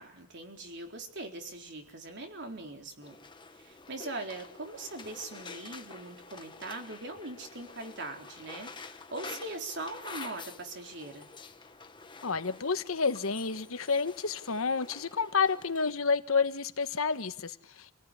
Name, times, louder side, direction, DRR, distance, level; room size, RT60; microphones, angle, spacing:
voice 1, 0.0-3.2 3.6-11.3, right 2 dB, 55° right, 4.1 m, -41 dB
sound 1, 3.0-15.9, left 4 dB, 25° left, 1.3 m, -48 dB
voice 2, 12.2-17.9, left 5 dB, 80° left, 1.3 m, -30 dB
27.5 x 18.0 x 10.0 m
head